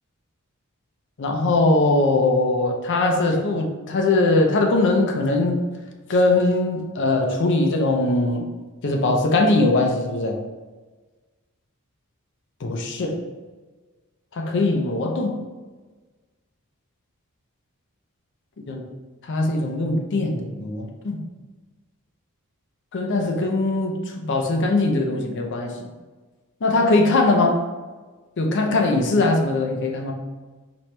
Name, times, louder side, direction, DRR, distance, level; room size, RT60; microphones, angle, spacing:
voice 1, 1.2-5.7 6.1-8.5 8.8-10.4 12.6-13.2 14.3-15.4 18.7-18.8 19.2-21.2 22.9-25.9 26.6-27.6 28.4-30.1, left 2 dB, 55° left, 2 dB, 0.5 m, -21 dB
4.4 x 3.0 x 3.2 m, 1.3 s
head